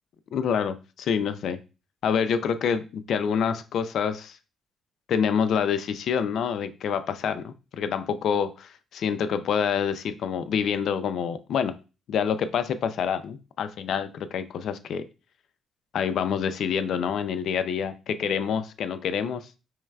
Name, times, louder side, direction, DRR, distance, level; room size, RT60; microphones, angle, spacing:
voice 1, 0.3-1.6 2.0-4.4 5.1-11.7 12.1-15.0 15.9-19.5, left 7 dB, 70° left, 0.4 m, -27 dB
4.7 x 3.1 x 2.2 m
cardioid pair, 90°, 0 cm